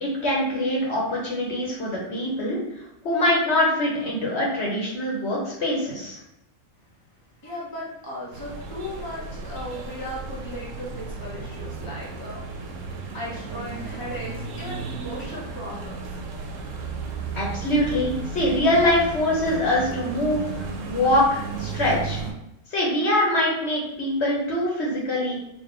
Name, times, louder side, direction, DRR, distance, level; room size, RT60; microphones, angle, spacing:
voice 1, 0.0-2.6 3.0-6.2 17.3-22.2 22.7-25.4, left 1 dB, 60° left, -3 dB, 1.3 m, -23 dB
voice 2, 7.4-12.9 13.1-16.1, left 1 dB, 20° left, -5 dB, 0.9 m, -37 dB
sound 1, 8.3-22.3, right 4 dB, 80° right, 1.0 m, -34 dB
4.1 x 2.9 x 3.3 m, 0.82 s
omnidirectional pair, 1.3 m